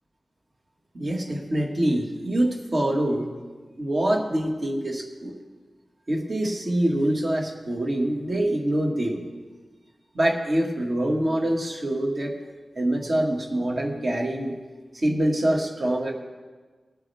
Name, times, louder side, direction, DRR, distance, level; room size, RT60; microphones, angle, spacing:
voice 1, 0.9-3.3 3.8-5.4 6.1-9.3 10.1-12.4 12.8-14.6 14.9-16.1, right 1 dB, 45° right, 0 dB, 1.9 m, -25 dB
21.0 x 9.0 x 3.5 m, 1.4 s
wide cardioid pair, 110°, 0 cm